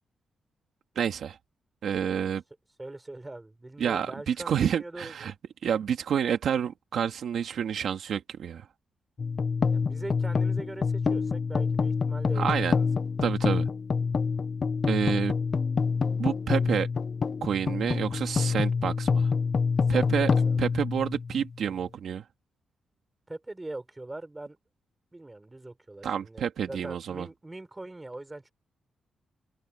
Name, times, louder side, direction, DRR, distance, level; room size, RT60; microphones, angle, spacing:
voice 1, 1.0-1.4 1.8-2.4 3.8-5.3 5.6-8.7 12.4-12.7 13.2-13.7 14.8-15.3 16.2-16.9 17.4-19.3 19.9-20.3 20.6-22.2 26.0-27.3, right 8 dB, 75° right, 2.1 m, -29 dB
voice 2, 2.8-5.3 9.7-12.9 13.1-13.3 19.9-20.6 23.3-24.6 25.1-28.5, right 2 dB, 15° right, 6.1 m, -42 dB
sound 1, 9.2-21.6, left 5 dB, 45° left, 0.9 m, -27 dB
open air
cardioid pair, 105°, 0 cm